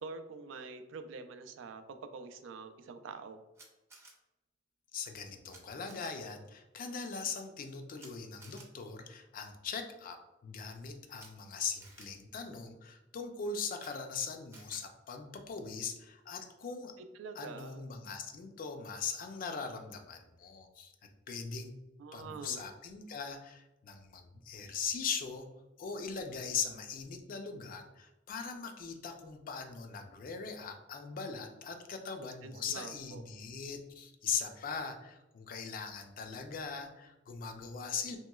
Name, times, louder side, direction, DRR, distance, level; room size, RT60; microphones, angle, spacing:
voice 1, 0.0-3.4 17.0-17.9 22.0-22.6 32.2-33.2, right 4 dB, 85° right, 9 dB, 0.3 m, -46 dB
Camera, 3.5-4.1 5.5-5.6 5.9-6.1 8.0-8.1 8.4-8.7 11.1-11.3 11.8-12.0 13.7-13.9 14.5-14.8, right 3 dB, 15° right, 0.5 m, -54 dB
voice 2, 4.9-16.9 17.4-20.9 21.3-21.7 22.1-25.5 25.8-38.2, left 5 dB, 45° left, 6 dB, 0.4 m, -40 dB
3.0 x 2.9 x 2.2 m, 1.0 s
head